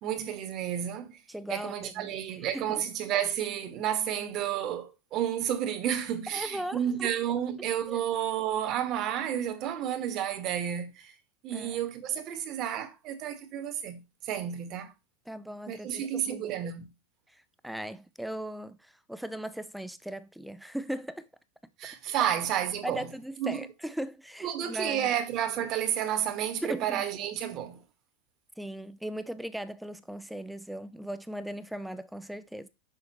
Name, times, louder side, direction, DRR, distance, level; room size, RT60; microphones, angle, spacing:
voice 1, 0.0-1.2 1.5-11.1 11.4-14.9 15.7-16.9 21.8-23.1 23.4-23.6 24.4-27.8, right 10 dB, 45° right, 1.5 m, -31 dB
voice 2, 1.3-2.1 2.5-2.8 6.3-7.1 7.9-8.0 11.5-11.8 15.3-16.5 17.3-21.3 22.2-22.3 22.8-25.1 26.6-27.0 28.6-32.7, right 1 dB, ahead, 0.5 m, -38 dB
6.5 x 5.7 x 3.0 m
hypercardioid pair, 95°, 0 cm